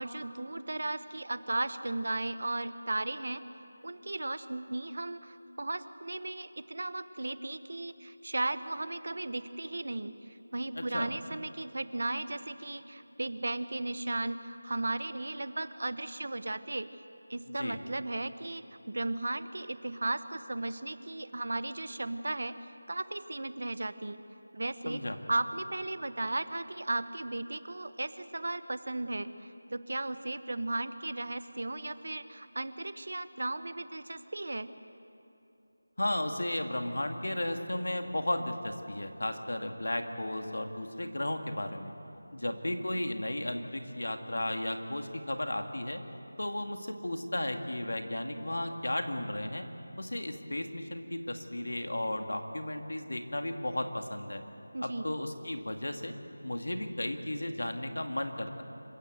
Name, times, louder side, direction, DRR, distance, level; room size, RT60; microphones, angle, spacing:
voice 1, 0.0-3.4 3.8-16.9 17.3-22.5 22.9-24.2 24.5-25.0 25.3-34.7 54.7-55.1, right 2 dB, 55° right, 13 dB, 0.9 m, -35 dB
voice 2, 10.8-11.1 17.6-17.8 24.9-25.2 36.0-41.9 42.3-46.0 46.4-49.6 50.0-54.4 54.8-56.1 56.4-58.6, left 1 dB, 80° left, 5 dB, 2.3 m, -34 dB
26.5 x 15.5 x 8.0 m, 2.9 s
figure-of-eight pair, 175°, 0 cm